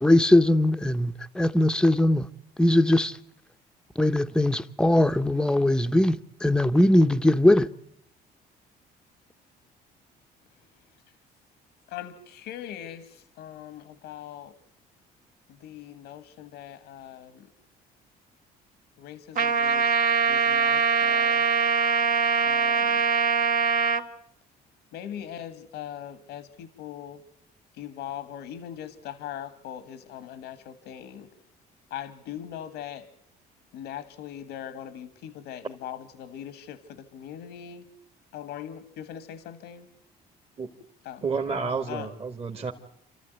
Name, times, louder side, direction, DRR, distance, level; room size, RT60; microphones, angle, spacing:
voice 1, 0.0-2.3 2.6-3.2 4.0-7.7, left 1 dB, 5° left, 0.9 m, -20 dB
voice 2, 11.9-14.5 15.6-17.5 19.0-19.9 20.3-21.4 22.4-23.0 24.9-27.2 27.8-31.3 31.9-33.0 33.7-37.8 38.3-39.9 41.0-41.2 41.9-42.1, left 10 dB, 85° left, 1.7 m, -40 dB
Trumpet, 19.4-24.0, right 5 dB, 55° right, 1.7 m, -23 dB
voice 3, 41.2-42.7, right 5 dB, 35° right, 1.9 m, -30 dB
29.0 x 13.5 x 9.3 m
cardioid pair, 110°, 17 cm